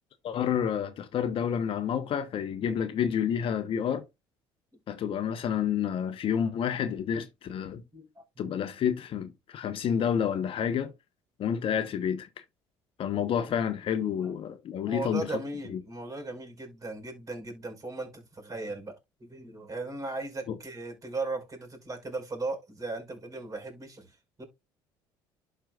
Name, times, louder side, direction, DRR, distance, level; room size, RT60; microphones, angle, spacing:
voice 1, 0.2-4.0 4.9-7.8 8.4-10.9 11.4-12.3 13.0-15.3 15.7-15.8 20.5-20.6, left 8 dB, 55° left, 0.9 m, -29 dB
voice 2, 7.8-8.6 13.1-13.7 14.2-14.4 14.9-18.9 19.2-24.4, right 2 dB, 30° right, 4.9 m, -38 dB
11.5 x 4.7 x 2.4 m
supercardioid pair, 75°, 11 cm